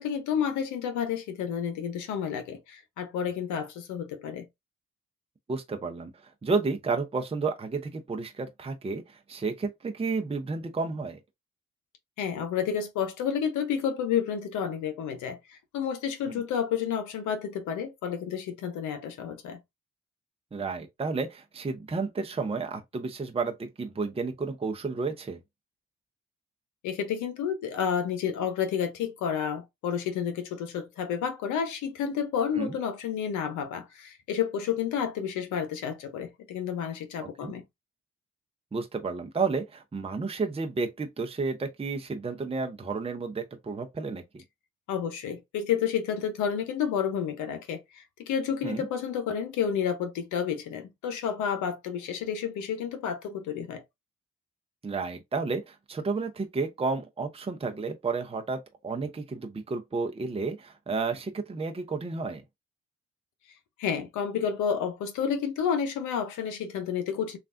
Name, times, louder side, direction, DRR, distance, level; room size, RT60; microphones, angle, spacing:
voice 1, 0.0-4.4 12.2-19.6 26.8-37.6 44.9-53.8 63.8-67.4, left 7 dB, 75° left, 0.8 m, -30 dB
voice 2, 5.5-11.2 16.3-16.4 20.5-25.4 32.5-32.8 37.2-37.5 38.7-44.4 48.6-48.9 54.8-62.4, right 4 dB, 20° right, 0.6 m, -32 dB
3.3 x 2.4 x 2.5 m
hypercardioid pair, 45°, 30 cm